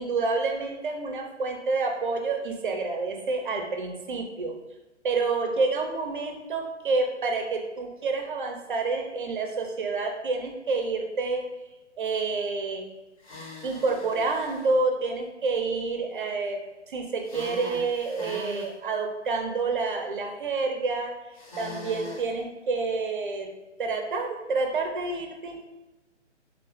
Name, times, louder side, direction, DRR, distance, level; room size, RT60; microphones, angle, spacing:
voice 1, 0.0-4.5 5.0-11.4 12.0-12.8 13.6-16.6 16.9-21.1 21.6-23.5 23.8-25.6, right 3 dB, 45° right, 4 dB, 0.5 m, -28 dB
sound 1, 13.2-14.7 17.2-18.7 21.3-22.3, left 2 dB, 30° left, 0.6 m, -41 dB
3.6 x 2.3 x 2.4 m, 1.1 s
figure-of-eight pair, 130°, 36 cm